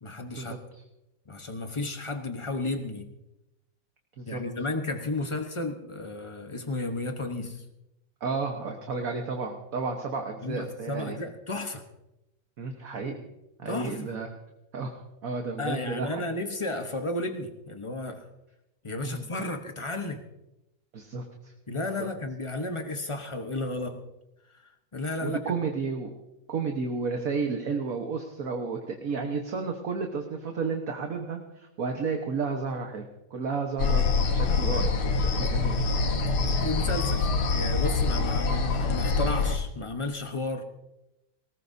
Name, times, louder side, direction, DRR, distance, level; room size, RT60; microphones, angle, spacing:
voice 1, 0.0-0.6 1.3-3.1 4.3-7.6 10.4-11.8 13.6-14.1 15.6-18.3 18.8-20.2 21.7-24.0 24.6-25.4 36.4-40.6, left 2 dB, 35° left, 6 dB, 0.4 m, -33 dB
voice 2, 8.2-11.1 12.6-13.2 13.6-14.3 14.7-14.9 15.2-16.2 19.0-19.3 20.9-21.5 22.0-22.1 25.2-26.1 26.5-34.0 34.3-35.8 36.4-36.5, right 4 dB, 45° right, 3 dB, 1.4 m, -32 dB
sound 1, 33.8-39.6, left 4 dB, 80° left, 2.1 m, -25 dB
19.5 x 18.5 x 2.7 m, 0.91 s
omnidirectional pair, 2.4 m